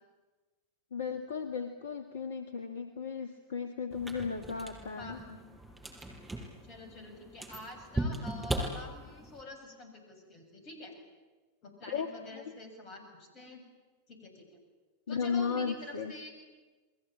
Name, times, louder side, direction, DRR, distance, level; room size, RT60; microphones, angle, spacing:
voice 1, 0.9-5.2 11.8-12.1 12.3-12.5 15.1-16.1, left 6 dB, 60° left, 8 dB, 1.7 m, -35 dB
sound 1, 3.9-9.4, right 1 dB, 10° right, 5.5 m, -39 dB
voice 2, 5.0-5.4 6.6-11.0 11.6-13.6 14.1-14.6 15.1-16.3, left 2 dB, 35° left, 6 dB, 7.6 m, -47 dB
30.0 x 21.5 x 8.9 m, 1.3 s
figure-of-eight pair, 90°, 0 cm